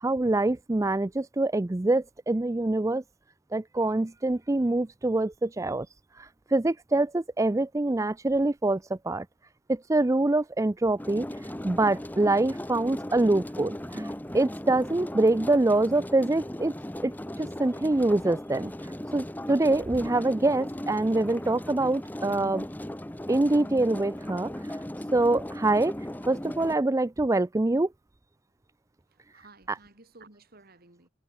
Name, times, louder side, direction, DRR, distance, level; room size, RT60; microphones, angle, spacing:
voice 1, 0.0-3.0 3.5-5.9 6.5-9.3 9.7-11.3 11.6-14.1 14.3-16.7 17.0-17.1 17.4-18.7 19.1-22.7 23.3-24.5 25.1-25.9 26.3-27.9, right 2 dB, 15° right, 0.4 m, -25 dB
sound 1, 11.0-26.7, left 1 dB, 10° left, 1.0 m, -37 dB
voice 2, 29.1-31.1, right 3 dB, 50° right, 3.2 m, -54 dB
head